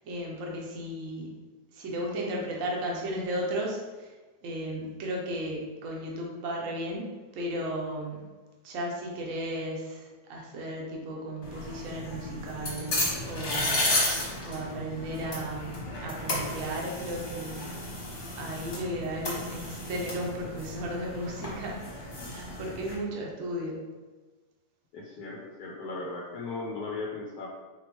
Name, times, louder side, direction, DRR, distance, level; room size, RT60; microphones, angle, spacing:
voice 1, 0.0-1.3 1.7-4.1 4.4-8.2 8.6-14.1 14.4-17.7 18.4-21.8 22.3-23.8, right 1 dB, 55° right, -1 dB, 1.0 m, -35 dB
sound 1, 11.4-23.0, left 1 dB, 45° left, 1.2 m, -33 dB
voice 2, 24.9-27.5, left 3 dB, 70° left, 0 dB, 1.0 m, -37 dB
4.2 x 3.0 x 3.0 m, 1.3 s
omnidirectional pair, 1.9 m